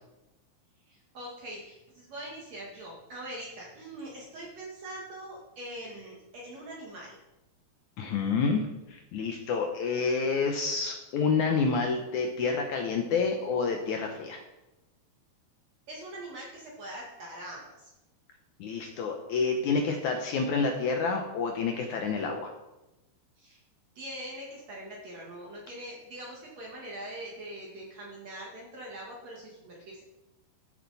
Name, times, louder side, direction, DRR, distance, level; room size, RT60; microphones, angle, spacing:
voice 1, 0.9-7.2 15.9-17.9 23.4-23.6 24.0-30.0, right 1 dB, 50° right, -3 dB, 2.5 m, -42 dB
voice 2, 8.0-8.6 8.9-14.4 18.6-22.5, left 4 dB, 70° left, 3 dB, 1.9 m, -28 dB
13.0 x 7.8 x 4.1 m, 0.97 s
omnidirectional pair, 4.4 m